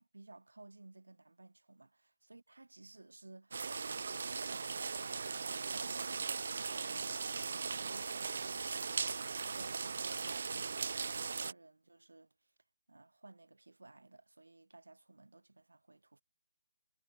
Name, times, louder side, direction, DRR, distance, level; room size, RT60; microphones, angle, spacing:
voice 1, 0.0-9.0 9.4-12.3 12.9-16.2, right 2 dB, 85° right, 4.8 m, -56 dB
sound 1, 3.5-11.5, right 5 dB, 60° right, 1.8 m, -38 dB
figure-of-eight pair, 150°, 0 cm